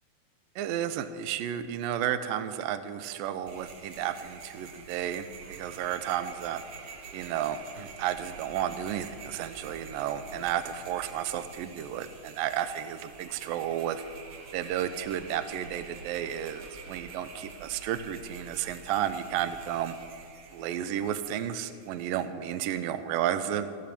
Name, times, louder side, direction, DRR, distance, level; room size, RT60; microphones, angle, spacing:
voice 1, 0.6-6.6 7.1-14.0 14.5-20.0 20.5-23.7, right 10 dB, 80° right, 11 dB, 2.2 m, -32 dB
sound 1, 3.5-22.3, right 4 dB, 60° right, 1.6 m, -47 dB
19.0 x 15.0 x 4.3 m, 2.2 s
omnidirectional pair, 4.5 m